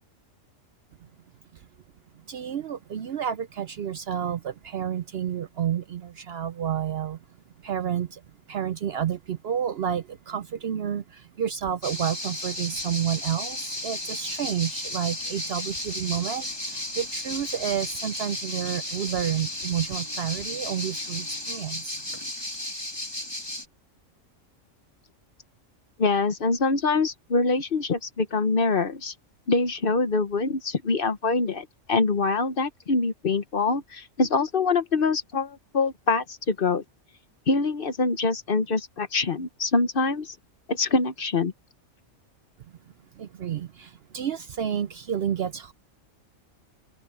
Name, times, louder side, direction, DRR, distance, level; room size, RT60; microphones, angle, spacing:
voice 1, 2.3-7.2 7.6-8.2 8.5-22.0 43.2-45.7, right 9 dB, 60° right, 0.7 m, -30 dB
sound 1, 11.8-23.6, left 1 dB, 20° left, 2.5 m, -34 dB
voice 2, 26.0-29.1 29.5-36.8 37.5-40.3 40.7-41.5, left 3 dB, 45° left, 1.1 m, -24 dB
open air
omnidirectional pair, 1.4 m